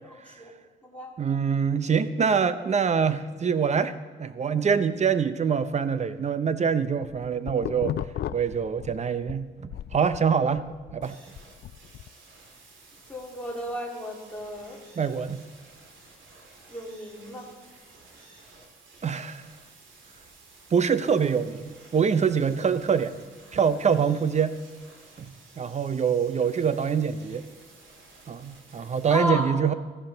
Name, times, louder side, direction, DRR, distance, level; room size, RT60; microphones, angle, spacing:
voice 1, 1.2-3.9 4.2-7.9 8.3-10.7 10.9-11.1 15.0-15.4 19.0-19.4 20.7-23.1 23.5-24.6 25.2-25.3 25.6-27.5 28.3-29.7, right 6 dB, 35° right, 13 dB, 0.7 m, -25 dB
sound 1, 6.8-9.4 9.7-12.1, left 11 dB, 55° left, 0.4 m, -35 dB
sound 2, 11.0-29.2, right 3 dB, 75° right, 2.5 m, -53 dB
voice 2, 13.1-14.8 16.7-17.5 23.9-24.0 29.1-29.6, left 1 dB, 5° left, -3 dB, 2.3 m, -33 dB
14.0 x 10.5 x 3.9 m, 1.3 s
cardioid pair, 90°, 20 cm